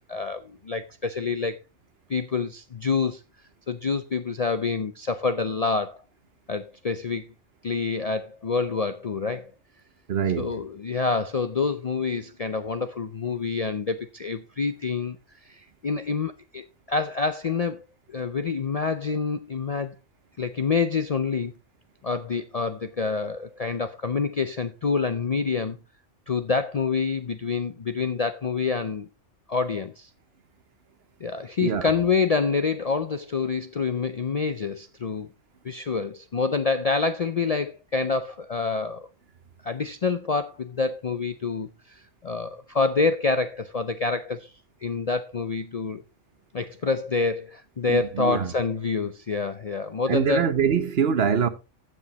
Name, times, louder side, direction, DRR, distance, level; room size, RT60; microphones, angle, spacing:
voice 1, 0.0-1.6 2.1-3.2 3.7-6.0 6.5-7.3 7.6-9.5 10.4-15.2 15.5-17.8 18.1-19.9 20.4-21.5 22.0-25.8 26.3-29.1 29.5-30.1 31.2-35.3 35.6-39.1 39.6-44.5 44.8-46.0 46.5-50.5, left 4 dB, 45° left, 0.5 m, -27 dB
voice 2, 10.1-10.5 31.6-31.9 47.9-48.5 50.1-51.5, right 7 dB, 60° right, 1.0 m, -24 dB
15.0 x 6.3 x 2.9 m
omnidirectional pair, 1.3 m